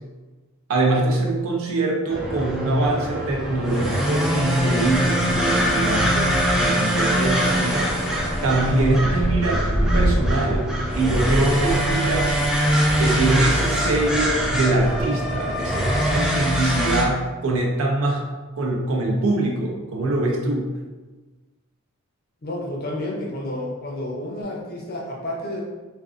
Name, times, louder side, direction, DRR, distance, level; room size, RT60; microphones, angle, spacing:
voice 1, 0.7-7.9 8.4-10.7 10.9-12.4 13.0-18.2 18.6-20.7, right 2 dB, 70° right, 0 dB, 0.5 m, -23 dB
sound 1, 2.1-17.0, equal, 5° right, 0.3 m, -22 dB
voice 2, 22.4-25.6, left 1 dB, 45° left, -2 dB, 0.6 m, -30 dB
2.5 x 2.4 x 2.4 m, 1.3 s
head